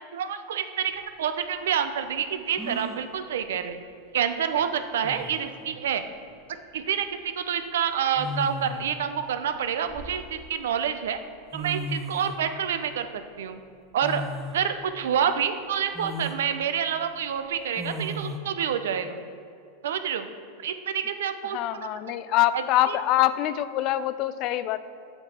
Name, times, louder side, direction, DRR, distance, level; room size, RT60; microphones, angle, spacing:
voice 1, 0.1-3.8 4.1-6.0 6.7-11.2 11.5-13.6 13.9-14.2 14.5-19.2 19.8-20.3 20.6-21.9 22.5-23.0, right 8 dB, 80° right, 9 dB, 0.5 m, -28 dB
sound 1, 1.0-1.1 2.6-3.1 4.6-4.7 5.0-5.5 6.8-7.1 8.1-8.9 9.6-10.6 11.3-11.4 11.5-12.4 14.0-14.6 15.1-15.2 15.9-16.4 17.8-18.4, equal, 10° right, 0.9 m, -35 dB
voice 2, 21.5-24.8, left 13 dB, 50° left, 14 dB, 0.3 m, -24 dB
7.8 x 5.9 x 4.3 m, 2.5 s
hypercardioid pair, 115°, 0 cm